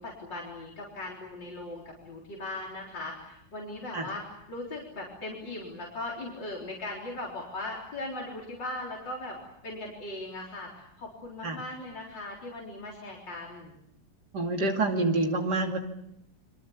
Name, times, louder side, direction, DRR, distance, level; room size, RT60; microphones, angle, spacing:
voice 1, 0.0-4.2 4.5-13.7, left 2 dB, 80° left, -2 dB, 4.6 m, -39 dB
voice 2, 14.3-15.8, right 2 dB, 65° right, 3 dB, 3.3 m, -27 dB
29.5 x 24.0 x 7.2 m, 0.76 s
omnidirectional pair, 2.0 m